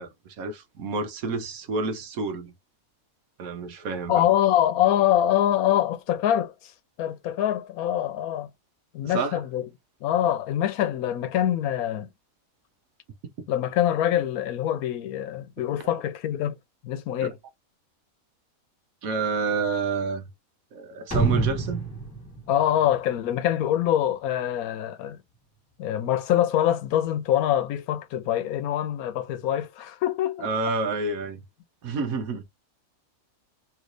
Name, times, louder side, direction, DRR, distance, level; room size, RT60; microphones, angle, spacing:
voice 1, 0.0-2.5 3.4-4.3 9.0-9.4 17.2-17.3 19.0-20.3 20.7-21.9 30.4-31.4 31.8-32.4, right 4 dB, 75° right, 1.3 m, -29 dB
voice 2, 4.1-6.7 7.0-8.5 8.9-9.7 10.0-12.1 13.5-16.5 16.8-17.3 22.5-25.2 25.8-30.5, left 11 dB, 85° left, 1.1 m, -24 dB
sound 1, 21.1-23.6, right 3 dB, 10° left, 1.6 m, -27 dB
3.1 x 3.1 x 2.5 m
omnidirectional pair, 1.5 m